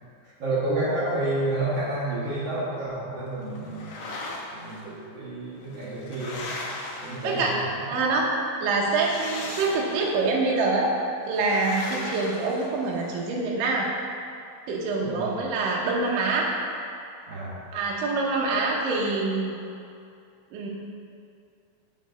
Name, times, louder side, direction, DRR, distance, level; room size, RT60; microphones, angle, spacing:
voice 1, 0.4-4.0 4.5-6.5 7.0-8.0 15.0-15.3 17.3-17.6, right 2 dB, 50° right, -8 dB, 2.0 m, -30 dB
sound 1, 3.6-4.8 5.6-7.8 8.8-10.3 11.3-13.2, left 2 dB, 90° left, 1.5 m, -38 dB
voice 2, 7.9-8.2 8.6-10.9 11.3-13.9 14.7-16.5 17.7-19.5 20.5-20.7, right 3 dB, 70° right, -2 dB, 2.5 m, -25 dB
7.1 x 5.2 x 5.1 m, 2.5 s
omnidirectional pair, 4.4 m